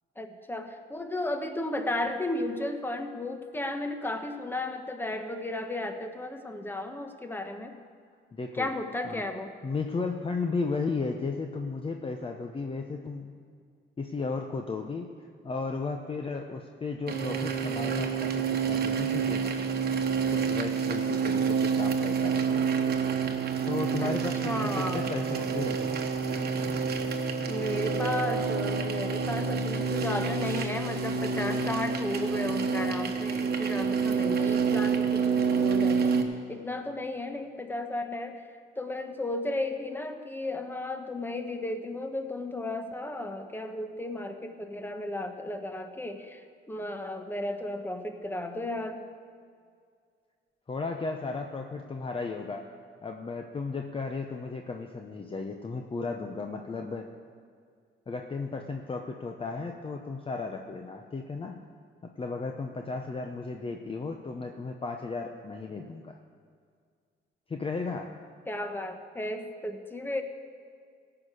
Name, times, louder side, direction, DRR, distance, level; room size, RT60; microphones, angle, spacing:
voice 1, 0.2-7.8 8.5-9.5 24.0-24.2 24.4-25.1 27.5-36.1 36.5-38.5 38.8-46.4 46.7-49.0 68.5-70.2, left 1 dB, 10° left, 6 dB, 1.2 m, -34 dB
voice 2, 8.3-8.7 9.0-9.2 9.6-13.3 14.0-15.1 15.4-19.5 20.3-22.6 23.7-25.9 50.7-52.7 53.0-57.1 58.1-61.6 62.0-66.2 67.5-68.1, left 4 dB, 25° left, 4 dB, 0.8 m, -34 dB
sound 1, 17.1-36.2, right 5 dB, 55° right, 1.2 m, -28 dB
16.0 x 5.9 x 8.1 m, 2.2 s
cardioid pair, 90°, 20 cm